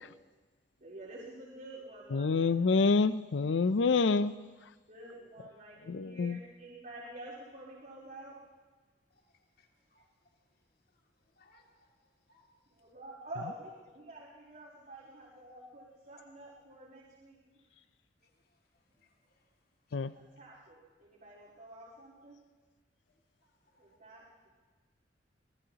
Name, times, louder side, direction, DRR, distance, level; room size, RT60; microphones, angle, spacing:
voice 1, 0.8-2.5 4.9-8.4 12.7-17.4 20.2-22.4 23.8-24.5, right 1 dB, 55° right, -11 dB, 4.2 m, -49 dB
voice 2, 2.1-4.3 5.9-6.4 19.9-20.1, left 4 dB, 75° left, 15 dB, 0.5 m, -27 dB
voice 3, 9.6-10.1 11.4-11.9 12.3-12.5 18.2-18.3 19.0-19.5 19.9-20.0 23.4-23.8, left 2 dB, 55° left, 0 dB, 2.3 m, -68 dB
25.0 x 19.5 x 2.9 m, 1.4 s
head